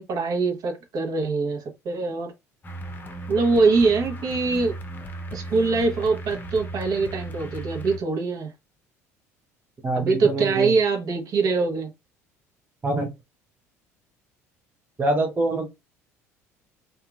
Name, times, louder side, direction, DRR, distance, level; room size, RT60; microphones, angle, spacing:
voice 1, 0.0-2.3 3.3-4.8 5.3-8.5 9.9-11.9, right 4 dB, 50° right, 1.0 m, -23 dB
sound 1, 2.6-8.0, right 1 dB, 25° left, 0.7 m, -36 dB
voice 2, 9.8-10.8 12.8-13.1 15.0-15.7, right 2 dB, 20° right, 0.6 m, -25 dB
2.8 x 2.4 x 2.4 m
hypercardioid pair, 65°, 8 cm